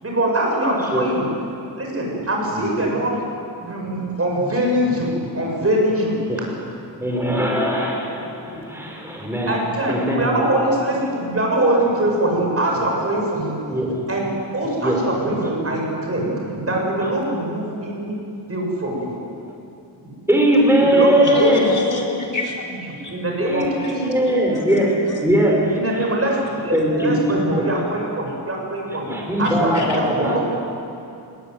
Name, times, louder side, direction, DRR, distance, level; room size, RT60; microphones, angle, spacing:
voice 1, 0.0-1.3 1.8-3.2 3.6-6.5 7.2-7.3 9.5-13.8 14.1-14.3 14.5-18.2 18.5-19.1 20.0-20.1 20.9-21.7 22.1-22.2 22.8-23.8 25.7-26.4 26.6-29.1 29.4-29.7 30.0-30.4, right 1 dB, 30° right, -1 dB, 7.8 m, -23 dB
voice 2, 7.0-9.6 9.9-10.3 13.7-14.1 14.6-15.1 19.4-19.5 20.3-21.7 23.4-26.1 26.7-27.7 29.1-30.4, right 1 dB, 5° right, -1 dB, 5.1 m, -20 dB
voice 3, 21.3-22.6 22.9-23.1 24.3-24.8 29.7-29.9, left 3 dB, 40° left, -1 dB, 5.0 m, -26 dB
21.0 x 20.5 x 9.7 m, 2.7 s
wide cardioid pair, 100°, 45 cm